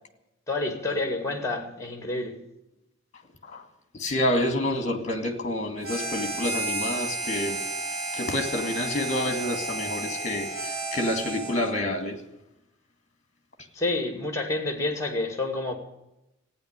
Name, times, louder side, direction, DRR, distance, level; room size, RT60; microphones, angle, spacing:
voice 1, 0.5-2.4 13.7-15.7, left 2 dB, 15° left, 2.3 m, -29 dB
voice 2, 4.0-7.6 8.1-12.2, left 1 dB, 35° left, 2.1 m, -28 dB
Harmonica, 5.8-11.8, right 2 dB, 75° right, 5.2 m, -32 dB
15.0 x 9.9 x 9.6 m
head